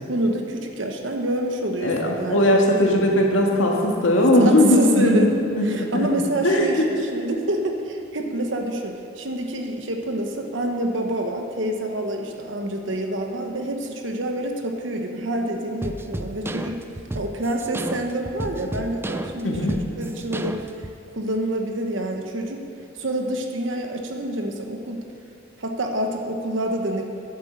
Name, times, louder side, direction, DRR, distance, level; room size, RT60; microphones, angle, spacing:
voice 1, 0.1-2.5 4.4-5.3 5.6-6.8 7.1-16.8 17.1-20.6 21.1-22.6 23.0-25.0 25.6-27.1, right 1 dB, 75° right, 3 dB, 1.1 m, -27 dB
voice 2, 1.8-6.1 6.4-6.8 19.4-19.8, left 1 dB, 90° left, 0 dB, 1.8 m, -19 dB
sound 1, 15.8-21.0, right 1 dB, 10° right, 0.4 m, -32 dB
10.5 x 8.4 x 7.5 m, 2.6 s
head